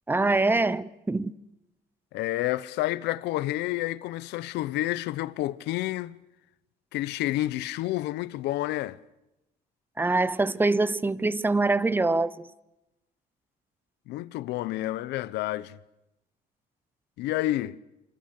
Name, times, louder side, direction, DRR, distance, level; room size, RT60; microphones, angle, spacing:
voice 1, 0.1-1.4 10.0-12.5, right 3 dB, 10° right, 0.9 m, -24 dB
voice 2, 2.1-6.2 6.9-9.0 14.1-15.8 17.2-17.8, left 16 dB, 85° left, 1.0 m, -29 dB
27.5 x 26.5 x 6.7 m
cardioid pair, 110°, 17 cm